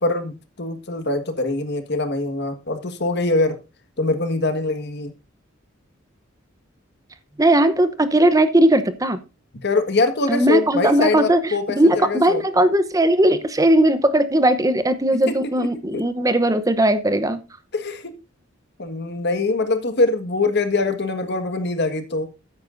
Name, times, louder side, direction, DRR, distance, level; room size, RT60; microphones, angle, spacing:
voice 1, 0.0-3.6 4.0-5.1 9.6-12.4 15.3-15.7 15.9-16.0 17.7-18.1 18.8-22.3, left 3 dB, 55° left, 1.6 m, -23 dB
voice 2, 7.4-9.2 10.3-17.4, right 1 dB, 15° right, 0.8 m, -18 dB
13.5 x 9.5 x 2.6 m
head